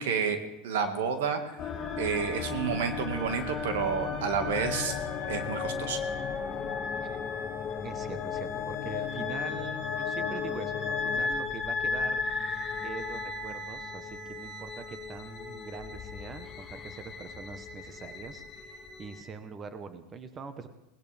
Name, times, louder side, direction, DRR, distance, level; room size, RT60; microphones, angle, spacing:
voice 1, 0.0-1.6 2.0-5.0 5.3-6.0, right 6 dB, 85° right, 6 dB, 1.9 m, -30 dB
sound 1, 1.5-11.2, left 11 dB, 65° left, 1.7 m, -39 dB
sound 2, 1.6-19.2, left 4 dB, 30° left, 2.9 m, -35 dB
voice 2, 7.8-12.6 12.8-20.7, right 5 dB, 30° right, 9 dB, 1.1 m, -43 dB
21.5 x 18.5 x 3.5 m, 0.91 s
supercardioid pair, 120°, 0 cm